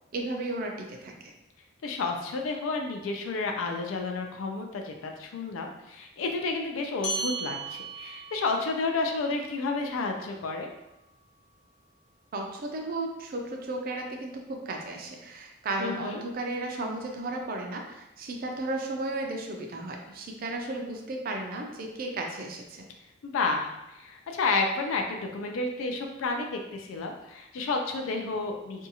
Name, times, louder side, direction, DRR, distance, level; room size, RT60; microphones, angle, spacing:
voice 1, 0.1-1.3 12.3-22.9, right 2 dB, 50° right, 2 dB, 0.4 m, -34 dB
voice 2, 1.8-10.7 15.8-16.2 23.2-28.9, left 3 dB, 90° left, 3 dB, 0.4 m, -31 dB
sound 1, 7.0-11.8, right 2 dB, 5° left, 0.6 m, -39 dB
2.6 x 2.3 x 2.7 m, 0.92 s
head